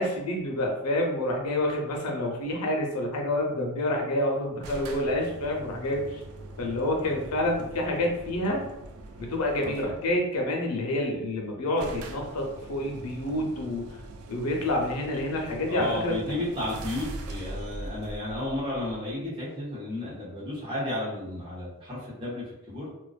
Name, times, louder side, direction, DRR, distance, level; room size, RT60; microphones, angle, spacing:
voice 1, 0.0-6.2 6.6-8.6 9.2-14.0 14.3-16.1, left 1 dB, 90° left, 0 dB, 0.6 m, -28 dB
sound 1, 4.6-10.1 11.1-11.2 11.4-11.5 11.8-19.3, right 1 dB, 75° right, 0.3 m, -42 dB
voice 2, 9.6-10.0 15.7-22.9, left 1 dB, 20° right, -7 dB, 0.9 m, -33 dB
2.4 x 2.1 x 2.4 m, 0.89 s
head